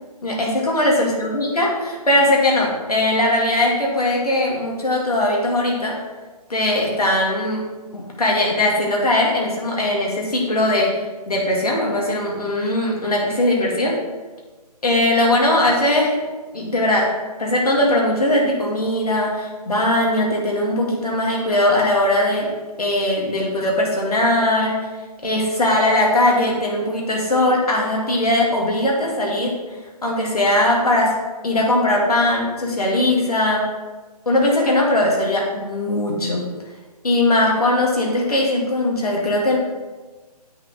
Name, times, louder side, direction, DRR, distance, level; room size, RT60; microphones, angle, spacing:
voice 1, 0.2-6.0 6.5-7.7 7.9-11.0 11.3-14.0 14.8-16.2 16.5-22.5 22.8-24.9 25.2-29.5 30.0-31.2 31.4-33.7 34.3-36.5 37.0-39.6, left 1 dB, 65° left, -2 dB, 2.3 m, -20 dB
8.2 x 6.3 x 3.7 m, 1.3 s
figure-of-eight pair, 140°, 21 cm